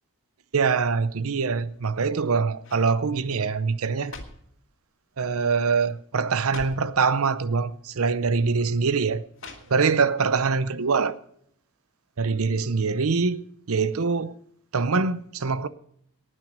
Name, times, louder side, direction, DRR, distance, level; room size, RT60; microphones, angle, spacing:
voice 1, 0.5-4.1 5.2-9.2 9.7-11.1 12.2-13.4 13.7-14.3 14.7-15.7, right 5 dB, 90° right, 0.7 m, -24 dB
sound 1, 1.7-2.2 2.6-2.9 3.7-4.6 5.4-5.6 5.9-6.0 6.4-6.9 7.9-8.0 9.3-10.1 10.5-10.6, left 3 dB, 65° left, 2.1 m, -43 dB
19.0 x 6.4 x 6.6 m
head